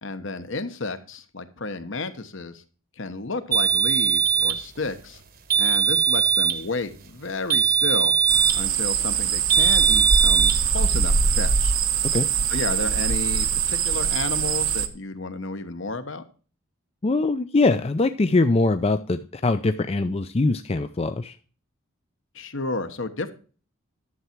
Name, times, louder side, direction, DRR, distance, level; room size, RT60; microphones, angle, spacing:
voice 1, 0.0-2.6 3.0-5.2 5.6-8.1 8.5-11.7 12.5-16.3 22.3-23.3, left 3 dB, 65° left, 10 dB, 1.2 m, -32 dB
sound 1, 3.5-4.6 5.5-6.6 7.5-8.6 9.5-10.6, right 7 dB, 45° right, 1.1 m, -20 dB
sound 2, 8.3-14.9, right 6 dB, 80° right, 1.0 m, -23 dB
voice 2, 17.0-21.3, left 3 dB, 30° left, 9 dB, 0.4 m, -22 dB
11.5 x 7.0 x 4.5 m, 0.38 s
head